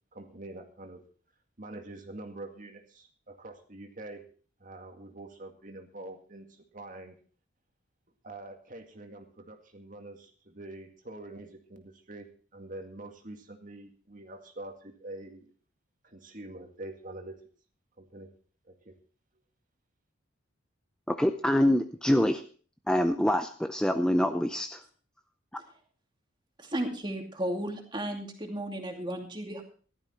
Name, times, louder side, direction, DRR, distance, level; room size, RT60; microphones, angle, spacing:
voice 1, 0.1-1.0 1.6-4.3 4.6-7.2 8.2-15.4 16.0-17.4 18.0-18.3 18.6-19.0, right 2 dB, 40° right, 5 dB, 2.0 m, -45 dB
voice 2, 21.1-22.4 22.9-24.8, left 1 dB, 5° left, 7 dB, 0.6 m, -25 dB
voice 3, 26.6-29.6, right 1 dB, 25° right, 3 dB, 2.5 m, -34 dB
15.5 x 12.5 x 4.4 m, 0.41 s
head